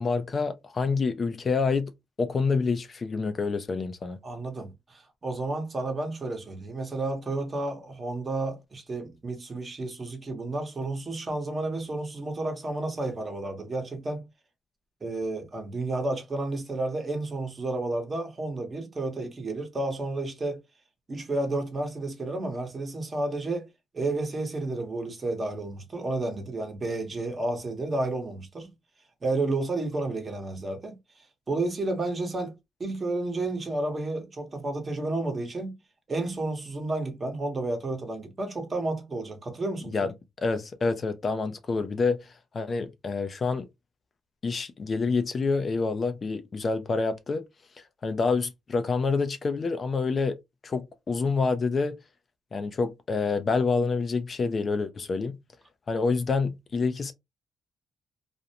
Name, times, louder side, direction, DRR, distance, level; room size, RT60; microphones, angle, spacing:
voice 1, 0.0-1.9 2.2-4.2 39.9-43.6 44.4-47.5 47.8-50.4 50.6-52.0 52.5-55.4 55.9-57.1, left 4 dB, 40° left, 0.4 m, -27 dB
voice 2, 4.2-14.3 15.0-20.6 21.1-23.7 23.9-28.7 29.2-31.0 31.5-35.8 36.1-39.9, right 2 dB, 35° right, 1.0 m, -31 dB
2.5 x 2.1 x 2.7 m
cardioid pair, 90°, 0 cm